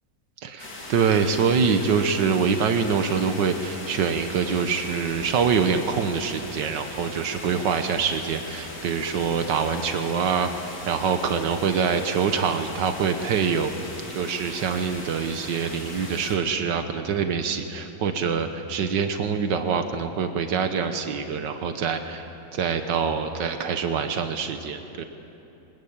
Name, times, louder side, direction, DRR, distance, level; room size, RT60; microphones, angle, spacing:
voice 1, 0.4-13.7 14.2-22.2 22.5-25.0, right 6 dB, 90° right, 7 dB, 1.7 m, -25 dB
sound 1, 0.6-16.4, left 2 dB, 70° left, 3.8 m, -39 dB
23.5 x 20.0 x 8.8 m, 2.9 s
omnidirectional pair, 1.9 m